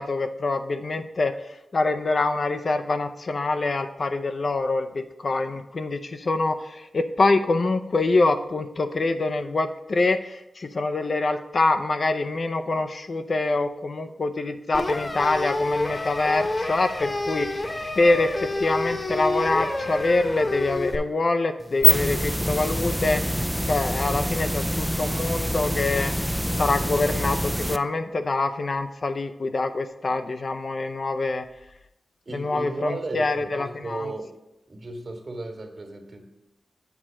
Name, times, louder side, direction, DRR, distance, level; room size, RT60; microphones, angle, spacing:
voice 1, 0.0-1.4 1.7-26.3 26.6-31.5 32.3-34.1, left 3 dB, 55° left, 8 dB, 0.5 m, -25 dB
sound 1, 14.7-21.0, left 2 dB, 35° left, 1.0 m, -28 dB
sound 2, 21.6-27.8, equal, 5° right, 0.4 m, -25 dB
voice 2, 32.2-34.3 34.7-36.3, right 2 dB, 50° right, 3 dB, 1.6 m, -35 dB
8.2 x 4.3 x 6.2 m, 0.92 s
cardioid pair, 70°, 0 cm